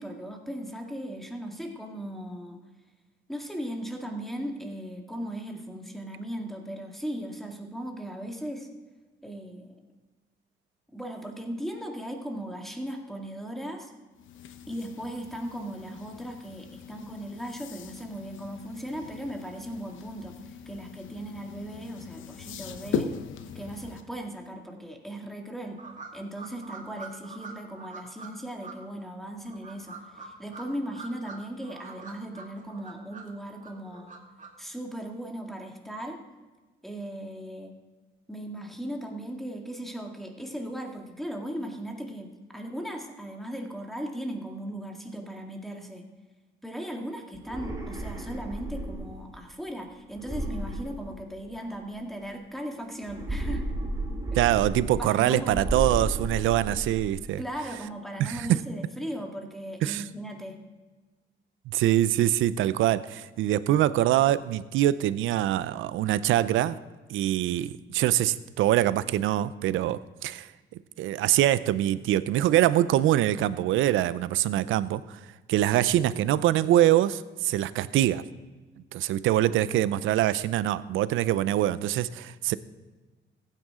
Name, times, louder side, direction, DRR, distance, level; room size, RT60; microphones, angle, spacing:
voice 1, 0.0-2.6 3.3-8.7 9.2-9.8 10.9-13.9 14.7-20.4 20.7-23.1 23.6-25.8 26.1-34.2 34.6-36.2 36.8-37.7 38.3-42.3 42.5-46.0 46.6-53.7 55.0-55.6 57.4-60.6, right 1 dB, ahead, 2 dB, 1.9 m, -37 dB
sound 1, 14.1-24.0, left 6 dB, 75° left, 0.9 m, -39 dB
sound 2, 25.8-28.3 28.6-28.7 29.4-31.4 31.6-33.3 33.6-34.5, right 5 dB, 40° right, 2.2 m, -44 dB
sound 3, 47.3-49.3 50.1-51.6 53.0-55.2 55.5-57.2, right 1 dB, 15° right, 2.6 m, -33 dB
voice 2, 54.3-57.4 58.2-58.6 59.8-60.0 61.7-66.8 67.1-70.5 71.0-75.2 75.5-78.2 78.9-82.6, right 13 dB, 85° right, 16 dB, 0.5 m, -24 dB
15.0 x 9.2 x 3.7 m, 1.3 s
cardioid pair, 90°, 20 cm